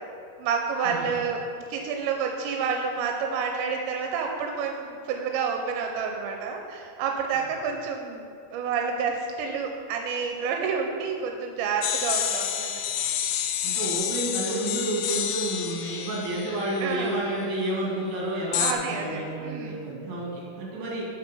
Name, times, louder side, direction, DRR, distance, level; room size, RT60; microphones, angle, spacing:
voice 1, 0.4-1.4 1.7-12.7 16.8-17.2 18.6-19.8, right 6 dB, 90° right, 2 dB, 2.9 m, -29 dB
sound 1, 11.8-17.5 18.5-18.7, left 9 dB, 85° left, 2.9 m, -29 dB
voice 2, 13.6-21.1, right 1 dB, 55° right, -4 dB, 3.9 m, -30 dB
8.8 x 7.4 x 5.4 m, 2.5 s
omnidirectional pair, 5.1 m